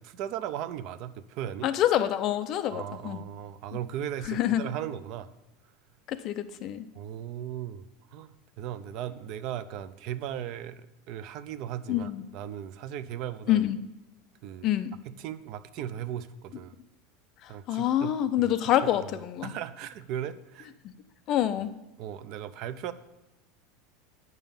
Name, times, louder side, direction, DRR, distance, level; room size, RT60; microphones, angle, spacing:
voice 1, 0.0-1.7 2.7-5.3 6.9-13.6 14.4-14.7 15.2-16.7 17.5-18.1 18.4-18.5 19.4-20.7 22.0-22.9, right 10 dB, 45° right, 13 dB, 0.5 m, -37 dB
voice 2, 1.6-3.2 4.2-4.6 6.1-6.9 11.9-12.2 13.5-13.8 14.6-14.9 17.4-19.5 20.8-20.9 21.3-21.7, left 12 dB, 35° left, 11 dB, 0.5 m, -27 dB
9.3 x 5.6 x 7.1 m, 0.92 s
supercardioid pair, 170°, 0 cm